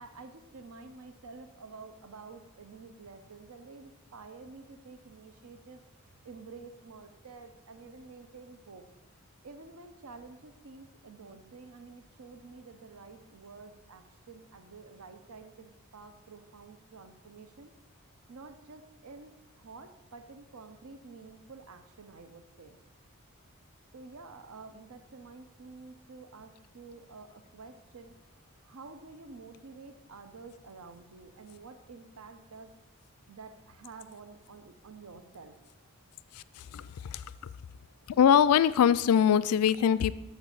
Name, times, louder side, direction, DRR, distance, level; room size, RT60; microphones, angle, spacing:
voice 1, 0.0-5.8 6.2-8.8 9.4-17.7 18.3-22.8 23.9-28.2 28.6-32.7 33.3-35.6, right 4 dB, 85° right, 8 dB, 0.7 m, -49 dB
voice 2, 36.3-37.2 38.1-40.1, left 8 dB, 90° left, 17 dB, 0.3 m, -23 dB
6.7 x 6.2 x 6.8 m, 1.0 s
head